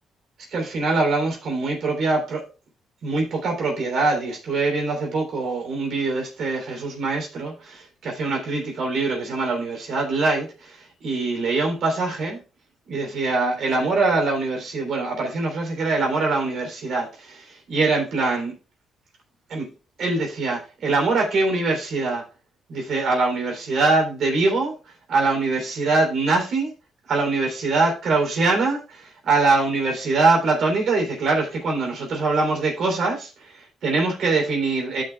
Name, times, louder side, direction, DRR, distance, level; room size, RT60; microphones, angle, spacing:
voice 1, 0.5-2.4 3.0-12.4 12.9-18.5 19.5-19.7 20.0-22.2 22.7-26.7 27.1-35.0, right 3 dB, 65° right, 3.2 m, -23 dB
13.0 x 6.0 x 2.3 m
cardioid pair, 90°, 0 cm